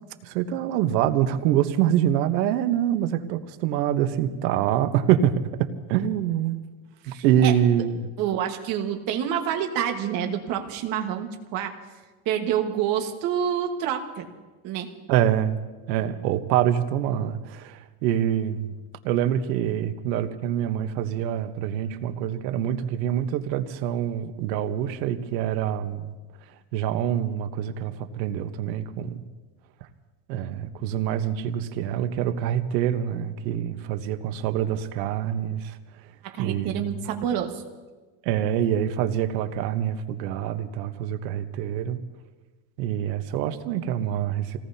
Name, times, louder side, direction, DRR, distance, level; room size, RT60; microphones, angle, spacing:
voice 1, 0.2-5.3 5.6-6.6 7.1-8.1 15.1-15.6 15.9-18.7 19.0-26.1 26.7-29.2 30.3-35.6 36.4-36.8 38.2-42.0 42.8-44.6, right 10 dB, 85° right, 9 dB, 1.2 m, -25 dB
voice 2, 7.0-7.5 8.2-11.8 12.2-14.2 14.6-14.9 36.2-37.6, right 9 dB, 45° right, 4 dB, 1.6 m, -27 dB
27.0 x 18.5 x 2.8 m, 1.2 s
cardioid pair, 175°, 49 cm